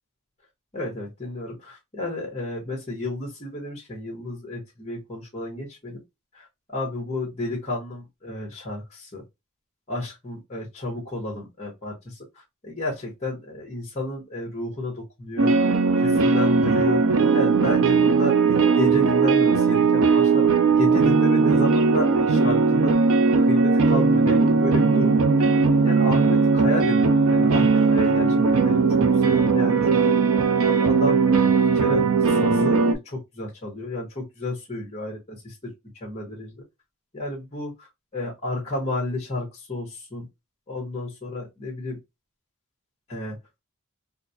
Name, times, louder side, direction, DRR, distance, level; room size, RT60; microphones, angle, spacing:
voice 1, 0.7-6.0 6.3-6.5 6.7-9.2 9.9-17.0 17.3-23.0 23.4-25.5 25.8-30.1 30.6-35.7 36.0-36.6 37.1-40.3 40.7-42.0 43.1-43.4, left 1 dB, 30° left, 1.2 m, -32 dB
sound 1, 15.4-32.9, right 4 dB, 75° right, 0.6 m, -19 dB
4.1 x 2.1 x 2.7 m
head